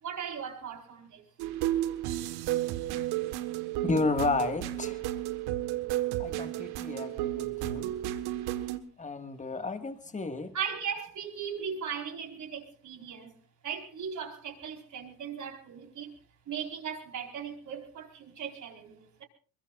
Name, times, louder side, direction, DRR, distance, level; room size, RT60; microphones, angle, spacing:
voice 1, 0.0-1.3 10.5-13.4 13.6-16.1 16.5-19.2, right 7 dB, 45° right, 3 dB, 4.5 m, -38 dB
sound 1, 1.4-8.8, right 14 dB, 65° right, 1.6 m, -32 dB
voice 2, 3.8-5.0 6.2-7.9 9.0-10.5, left 3 dB, 15° left, 8 dB, 1.9 m, -32 dB
23.0 x 22.0 x 2.5 m, 0.39 s
supercardioid pair, 85°, 42 cm